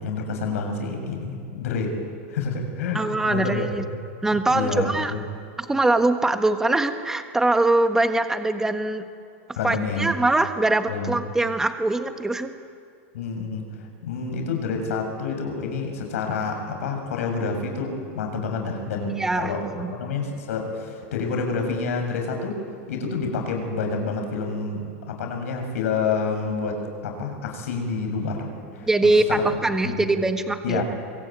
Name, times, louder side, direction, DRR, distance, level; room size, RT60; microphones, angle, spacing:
voice 1, 0.0-3.6 4.5-5.2 9.6-10.1 10.9-11.2 13.1-19.7 20.0-22.6 22.9-29.4 29.8-30.1 30.6-30.8, left 4 dB, 80° left, 4 dB, 6.6 m, -28 dB
voice 2, 2.9-3.8 4.2-5.1 5.6-9.0 9.6-12.5 19.2-19.9 28.8-30.8, right 2 dB, 5° right, 7 dB, 1.4 m, -22 dB
24.0 x 23.0 x 9.2 m, 2.3 s
supercardioid pair, 150°, 8 cm